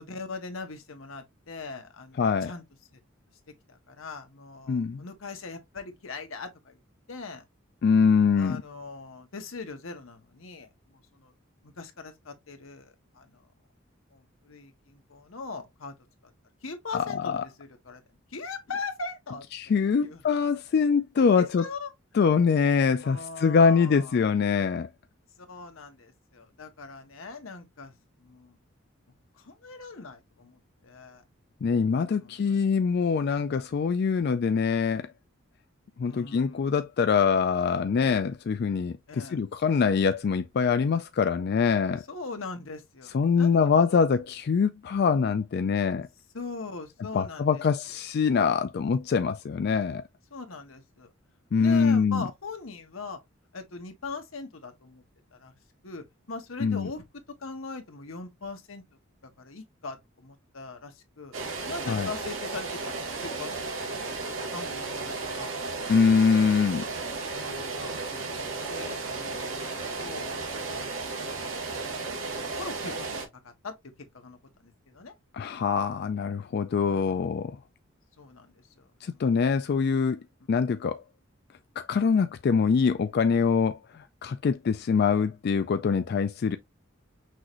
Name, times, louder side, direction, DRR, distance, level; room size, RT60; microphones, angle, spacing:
voice 1, 0.0-2.6 3.7-6.8 7.1-7.4 8.4-11.3 11.6-13.4 14.1-15.9 16.6-18.0 18.3-20.2 21.2-21.9 23.0-24.2 25.4-27.9 28.2-28.6 29.4-31.2 32.2-32.6 36.0-36.7 39.1-39.4 42.1-43.8 46.3-47.6 50.3-51.1 51.6-53.2 53.5-55.0 55.3-55.5 55.8-57.0 57.4-58.8 59.4-61.3 61.7-64.0 64.5-65.5 66.4-66.6 67.3-70.4 70.7-71.5 71.9-72.1 72.6-73.7 74.1-75.1 76.8-77.3 78.2-79.2, left 4 dB, 85° left, 1.2 m, -41 dB
voice 2, 2.2-2.5 4.7-5.0 7.8-8.6 16.9-17.4 19.5-21.6 22.1-24.9 31.6-35.1 36.0-42.0 43.1-46.1 47.1-50.0 51.5-52.2 56.6-56.9 61.9-62.1 65.9-66.8 75.3-77.6 79.0-80.2 80.5-81.0 81.8-86.6, left 5 dB, 50° left, 0.3 m, -24 dB
sound 1, 61.3-73.3, right 3 dB, 90° right, 1.9 m, -34 dB
6.1 x 2.5 x 3.0 m
head